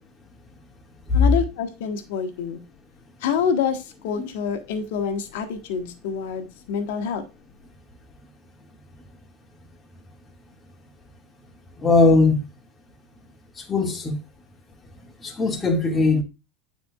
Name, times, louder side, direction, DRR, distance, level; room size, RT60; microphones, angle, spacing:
voice 1, 1.1-2.6 3.2-7.2, left 7 dB, 65° left, 1.3 m, -27 dB
voice 2, 11.8-12.4 13.7-14.1 15.2-16.2, left 3 dB, 20° left, 2.0 m, -19 dB
9.6 x 4.3 x 2.4 m
hypercardioid pair, 90°, 0 cm